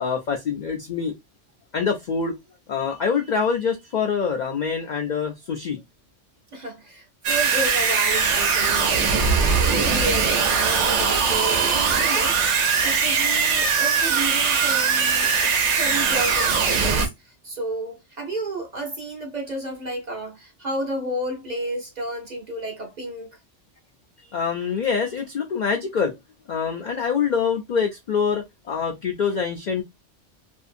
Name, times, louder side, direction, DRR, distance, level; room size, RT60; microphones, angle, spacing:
voice 1, 0.0-1.1 1.7-2.3 2.7-5.8 24.3-26.1 26.5-29.8, left 6 dB, 65° left, 0.4 m, -25 dB
voice 2, 6.5-12.4 12.8-23.3, right 1 dB, 45° right, 0.7 m, -32 dB
sound 1, 7.2-17.1, right 5 dB, 70° right, 0.9 m, -21 dB
2.6 x 2.4 x 2.5 m
omnidirectional pair, 1.3 m